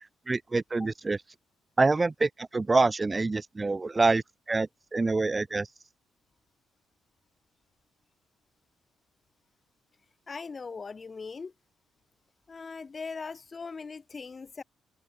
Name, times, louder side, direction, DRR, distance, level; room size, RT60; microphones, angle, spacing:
voice 1, 0.3-1.2 1.8-5.7, right 3 dB, 25° right, 2.7 m, -26 dB
voice 2, 10.3-11.5 12.5-14.6, left 4 dB, 35° left, 7.8 m, -40 dB
cardioid pair, 90°, 0 cm